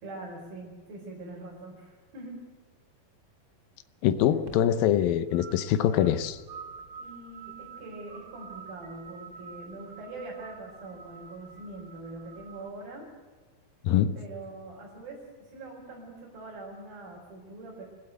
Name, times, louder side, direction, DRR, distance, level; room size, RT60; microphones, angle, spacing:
voice 1, 0.0-2.4 4.5-4.6 7.0-13.1 14.2-17.8, right 2 dB, 85° right, 6.4 m, -43 dB
voice 2, 4.0-6.4 13.8-14.2, left 10 dB, 85° left, 2.7 m, -24 dB
sound 1, 4.2-12.7, right 6 dB, 55° right, 1.2 m, -48 dB
25.0 x 17.0 x 8.1 m
omnidirectional pair, 4.1 m